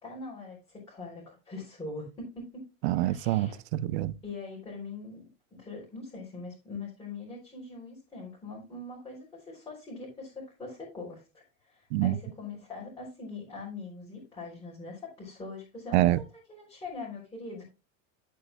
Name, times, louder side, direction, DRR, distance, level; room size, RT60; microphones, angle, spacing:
voice 1, 0.0-2.6 2.9-3.6 4.2-16.1 16.5-17.6, left 3 dB, 10° left, 3.8 m, -42 dB
voice 2, 2.8-4.1 11.9-12.2 15.9-16.2, right 15 dB, 65° right, 0.6 m, -26 dB
11.0 x 8.4 x 2.3 m
supercardioid pair, 175°, 36 cm